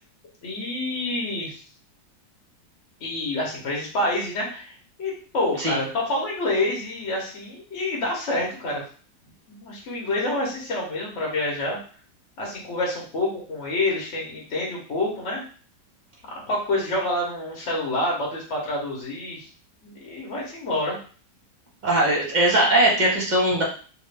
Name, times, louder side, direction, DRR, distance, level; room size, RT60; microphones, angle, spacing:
voice 1, 0.4-1.6 3.0-4.7 5.0-8.8 9.5-11.8 12.4-15.4 16.5-19.5 19.8-21.0, left 2 dB, 50° left, -3 dB, 1.2 m, -27 dB
voice 2, 21.8-23.6, right 1 dB, 35° right, -3 dB, 0.8 m, -20 dB
3.2 x 2.5 x 3.3 m, 0.40 s
omnidirectional pair, 1.9 m